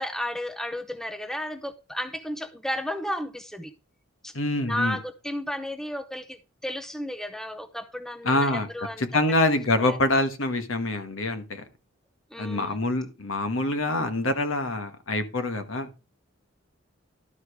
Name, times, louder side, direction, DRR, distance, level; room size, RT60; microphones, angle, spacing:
voice 1, 0.0-3.7 4.2-4.3 4.7-9.1 9.8-10.0 12.3-12.8, left 1 dB, ahead, 0.6 m, -33 dB
voice 2, 4.3-5.0 8.2-8.7 9.0-11.6 12.4-15.9, left 2 dB, 80° left, 1.3 m, -25 dB
12.5 x 5.0 x 4.8 m
head